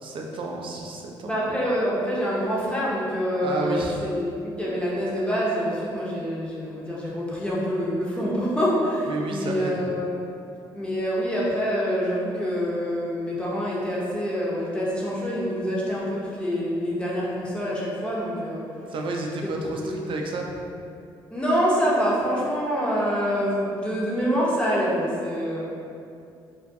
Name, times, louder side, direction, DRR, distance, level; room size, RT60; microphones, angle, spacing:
voice 1, 0.0-1.6 3.4-4.0 9.1-9.8 18.9-20.5, right 2 dB, 55° right, 0 dB, 0.4 m, -31 dB
voice 2, 1.2-10.2 10.7-18.6 19.8-20.0 21.3-25.7, equal, 10° left, -6 dB, 0.7 m, -26 dB
2.3 x 2.2 x 2.6 m, 2.5 s
supercardioid pair, 55°, 11 cm